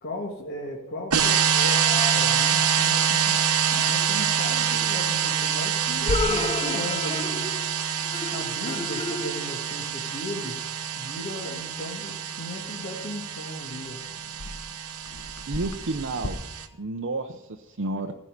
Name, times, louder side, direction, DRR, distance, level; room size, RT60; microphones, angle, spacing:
voice 1, 0.0-3.4 3.7-7.4 8.3-10.6 10.9-14.0, left 1 dB, 50° left, -1 dB, 1.9 m, -37 dB
sound 1, 1.1-16.7, right 8 dB, 85° right, 1.2 m, -26 dB
sound 2, 1.7-4.4 6.0-9.9, left 4 dB, 25° left, 0.4 m, -34 dB
Clock, 5.9-16.3, left 1 dB, 90° left, 1.2 m, -39 dB
voice 2, 15.5-16.4 16.8-18.1, right 2 dB, 55° right, 4 dB, 0.7 m, -31 dB
16.0 x 5.5 x 9.9 m, 0.95 s
head